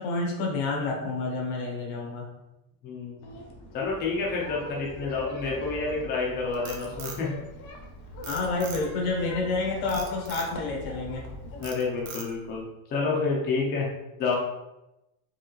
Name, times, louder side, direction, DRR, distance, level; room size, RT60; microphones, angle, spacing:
voice 1, 0.0-2.3 8.3-11.3, left 3 dB, 85° left, 0 dB, 1.4 m, -29 dB
voice 2, 2.8-3.2 3.7-7.3 11.6-13.9 14.2-14.4, left 4 dB, 25° left, -2 dB, 0.5 m, -29 dB
sound 1, 3.2-11.7, left 1 dB, 55° left, 0.9 m, -41 dB
Frog, 6.3-7.9 8.2-9.1 9.9-10.5 11.0-11.3 11.6-12.5, right 6 dB, 45° right, 0.7 m, -41 dB
4.7 x 3.3 x 3.1 m, 0.94 s
cardioid pair, 180°, 42 cm